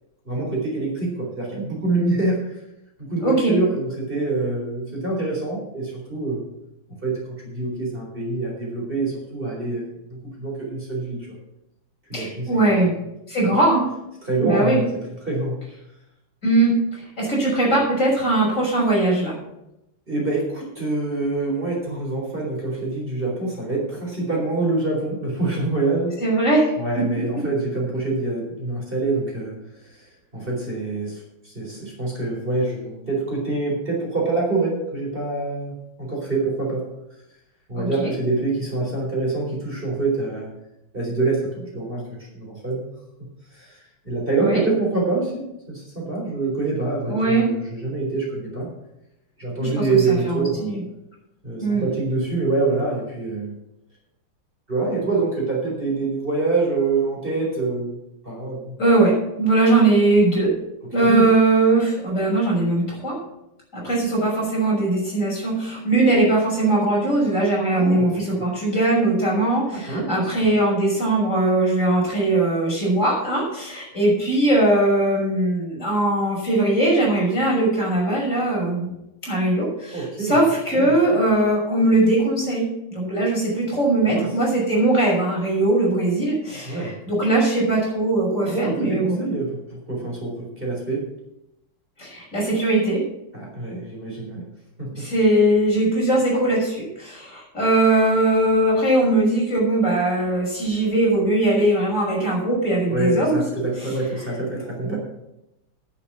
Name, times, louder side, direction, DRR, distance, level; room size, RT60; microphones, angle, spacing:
voice 1, 0.2-2.6 3.0-6.4 7.0-11.4 12.1-12.9 14.2-15.6 20.1-26.1 26.8-36.9 37.7-40.5 40.9-42.9 43.5-48.7 49.4-50.7 51.4-53.5 54.7-58.8 61.0-61.3 67.7-68.5 69.7-70.3 79.9-80.4 80.7-80.9 84.1-84.3 86.7-86.9 88.5-91.0 93.3-94.5 94.8-95.1 102.9-105.0, right 3 dB, 25° right, -3 dB, 4.1 m, -26 dB
voice 2, 3.2-3.5 12.1-12.9 13.3-13.9 14.4-14.8 16.4-19.4 26.2-27.0 37.7-38.1 44.4-44.6 47.1-47.5 49.6-50.8 51.6-51.8 58.8-59.1 59.4-60.5 60.9-63.2 63.7-78.9 79.2-89.2 92.0-93.0 95.0-103.4 104.8-105.0, right 2 dB, 35° left, -4 dB, 6.6 m, -20 dB
10.5 x 8.6 x 7.4 m, 0.87 s
omnidirectional pair, 2.4 m